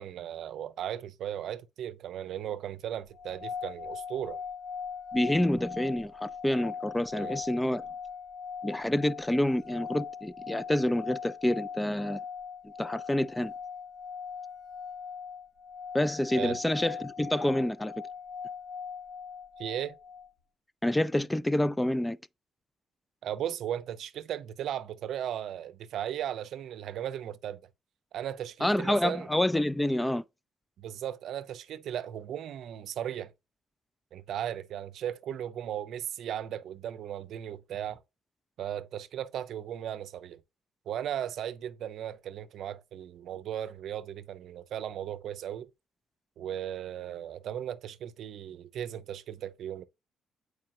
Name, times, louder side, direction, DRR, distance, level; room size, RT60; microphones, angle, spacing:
voice 1, 0.0-4.4 7.1-7.4 16.3-16.6 19.6-20.0 23.2-27.6 28.1-29.3 30.8-33.3 34.1-38.0 38.6-40.4 40.9-45.7 46.4-49.8, right 10 dB, 75° right, 0.5 m, -36 dB
sound 1, 3.1-20.3, left 6 dB, 75° left, 1.7 m, -40 dB
voice 2, 5.1-7.8 8.6-12.2 12.8-13.5 15.9-17.9 20.8-22.2 28.6-30.2, left 1 dB, 10° left, 0.3 m, -28 dB
7.5 x 4.8 x 2.7 m
cardioid pair, 90°, 0 cm